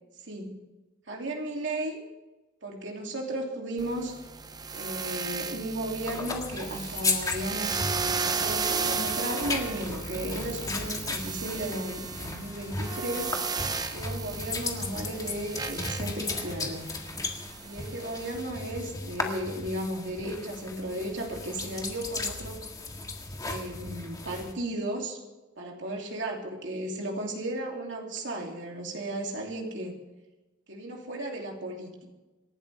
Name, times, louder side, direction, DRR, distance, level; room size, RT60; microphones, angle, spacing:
voice 1, 0.2-0.6 1.1-2.0 2.6-4.2 4.7-7.8 8.2-13.4 13.9-16.9 17.6-22.6 23.4-25.2 25.6-29.9 30.7-32.1, right 1 dB, 65° right, 0 dB, 2.9 m, -35 dB
sound 1, 3.8-18.4, right 5 dB, 20° right, 0.8 m, -35 dB
sound 2, 6.0-24.5, left 3 dB, 20° left, 1.7 m, -36 dB
27.0 x 12.0 x 3.5 m, 1.1 s
head